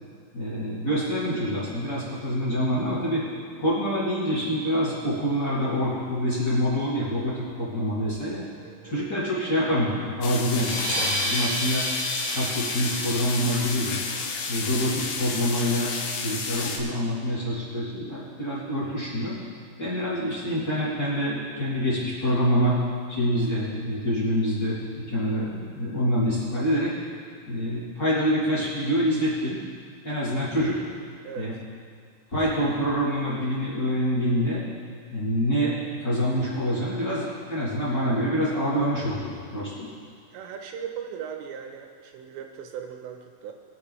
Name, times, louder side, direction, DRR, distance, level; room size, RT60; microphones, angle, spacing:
voice 1, 0.3-3.2 3.6-8.4 8.8-11.8 12.3-14.0 14.5-15.9 16.2-19.4 19.8-22.8 23.1-26.9 27.5-29.6 30.0-30.8 31.3-31.5 32.3-34.6 35.1-39.9, equal, 25° left, -10 dB, 3.1 m, -26 dB
voice 2, 8.6-9.0 31.2-31.6 40.3-43.5, right 8 dB, 90° right, 4 dB, 3.0 m, -38 dB
sound 1, 10.2-16.8, left 4 dB, 75° left, 3.1 m, -31 dB
sound 2, 10.4-15.6, equal, 30° right, 2.5 m, -32 dB
23.0 x 8.0 x 3.3 m, 2.2 s
omnidirectional pair, 5.1 m